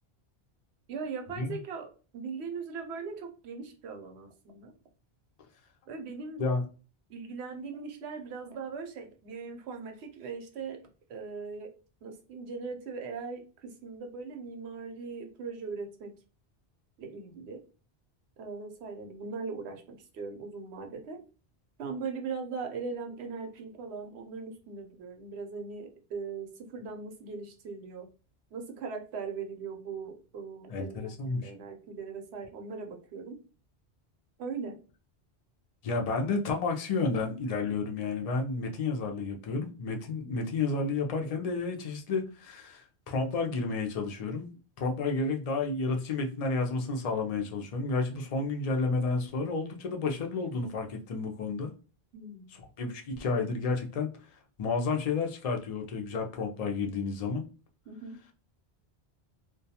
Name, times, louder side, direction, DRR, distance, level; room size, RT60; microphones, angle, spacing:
voice 1, 0.9-1.9 2.1-4.7 5.9-6.4 7.1-10.8 11.1-11.7 12.0-16.1 17.0-17.6 18.4-21.2 21.8-28.1 28.5-33.4 34.4-34.8 52.1-52.4 57.9-58.2, right 5 dB, 90° right, 0.9 m, -39 dB
voice 2, 30.7-31.5 35.8-44.5 44.8-51.7 52.5-54.3 54.6-57.5, left 3 dB, 50° left, 0.4 m, -31 dB
2.2 x 2.2 x 2.7 m
omnidirectional pair, 1.1 m